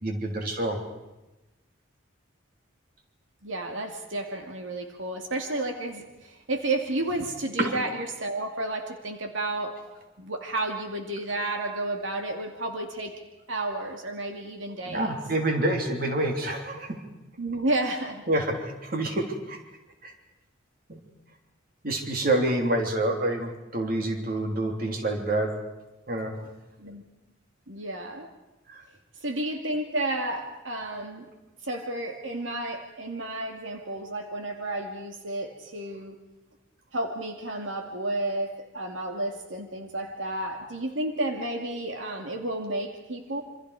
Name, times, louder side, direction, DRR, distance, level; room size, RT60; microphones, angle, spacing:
voice 1, 0.0-0.8 7.6-7.7 14.8-17.0 18.3-19.6 20.0-20.1 20.9-21.0 21.8-25.6 26.1-26.3 28.7-28.8, right 1 dB, 45° right, 3 dB, 3.2 m, -27 dB
voice 2, 3.4-9.8 10.2-13.2 13.5-15.2 17.4-18.2 26.8-27.0 27.7-28.3 29.2-31.3 31.6-36.2 36.9-43.4, right 2 dB, 80° right, 3 dB, 2.4 m, -31 dB
27.5 x 25.5 x 4.9 m, 1.0 s
head